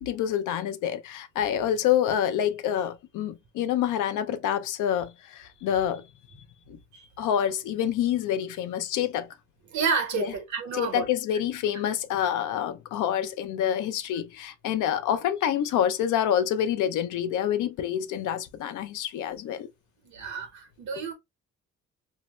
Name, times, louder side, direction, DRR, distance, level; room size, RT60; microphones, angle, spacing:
voice 1, 0.0-6.0 6.3-6.8 7.2-9.3 10.2-10.3 10.7-19.7, left 10 dB, 80° left, 0.5 m, -27 dB
voice 2, 9.7-11.1 20.0-21.1, right 5 dB, 70° right, 1.1 m, -30 dB
2.7 x 2.0 x 3.0 m
cardioid pair, 90°, 30 cm